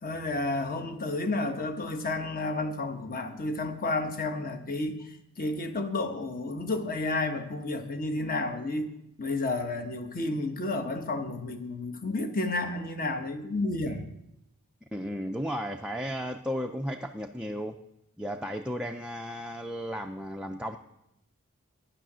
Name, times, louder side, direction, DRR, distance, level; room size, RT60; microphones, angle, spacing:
voice 1, 0.0-5.1 5.4-8.9 9.2-14.1, left 2 dB, 40° left, 6 dB, 1.1 m, -31 dB
voice 2, 14.9-17.8 18.2-20.8, equal, 5° right, 2 dB, 0.4 m, -34 dB
10.0 x 9.9 x 6.2 m, 0.84 s
head